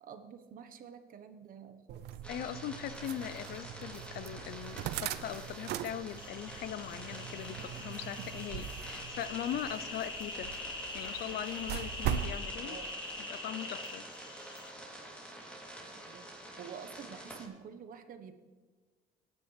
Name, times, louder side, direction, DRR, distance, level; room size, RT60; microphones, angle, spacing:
voice 1, 0.0-2.0 12.6-13.0 15.8-16.3 16.6-18.4, right 7 dB, 55° right, 8 dB, 1.2 m, -48 dB
sound 1, 1.9-12.4, right 10 dB, 75° right, 0.6 m, -41 dB
sound 2, 2.2-17.5, right 1 dB, 5° left, 3.0 m, -48 dB
voice 2, 2.3-10.6 10.9-12.8 13.2-14.1, left 11 dB, 70° left, 15 dB, 0.6 m, -40 dB
sound 3, 6.2-14.7, left 2 dB, 30° left, 1.9 m, -44 dB
17.5 x 9.7 x 3.3 m, 1.4 s
cardioid pair, 110°, 17 cm